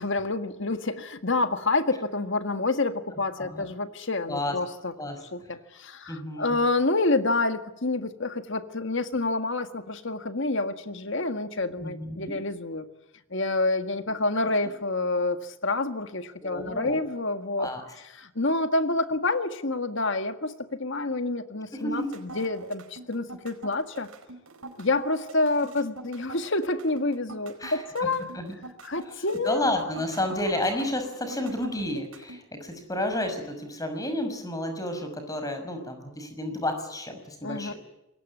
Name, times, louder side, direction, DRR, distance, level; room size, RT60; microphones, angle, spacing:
voice 1, 0.0-4.9 5.3-12.9 13.3-17.7 18.1-24.1 24.8-28.3 28.8-29.7 37.4-37.7, left 2 dB, 55° left, 9 dB, 1.8 m, -28 dB
voice 2, 3.4-3.7 4.3-4.6 5.0-5.2 6.1-6.6 11.8-12.4 16.4-17.0 17.6-17.8 21.7-22.1 27.6-28.1 28.3-28.6 29.4-37.7, left 1 dB, 15° left, 7 dB, 6.1 m, -31 dB
sound 1, 21.8-32.4, right 3 dB, 80° right, 4.8 m, -43 dB
26.5 x 22.5 x 8.5 m, 0.94 s
head